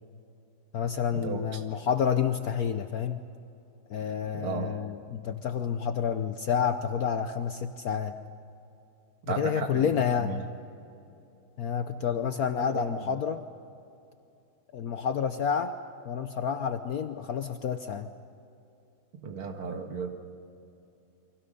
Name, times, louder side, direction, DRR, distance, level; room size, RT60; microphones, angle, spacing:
voice 1, 0.7-3.2 3.9-8.1 9.3-10.4 11.6-13.4 14.7-15.8 16.0-18.1, left 7 dB, 65° left, 9 dB, 0.9 m, -29 dB
voice 2, 4.3-4.7 9.3-9.9 10.2-10.4 12.7-12.8 19.2-20.1, right 6 dB, 85° right, 4 dB, 2.7 m, -34 dB
29.5 x 23.5 x 5.4 m, 2.7 s
omnidirectional pair, 2.3 m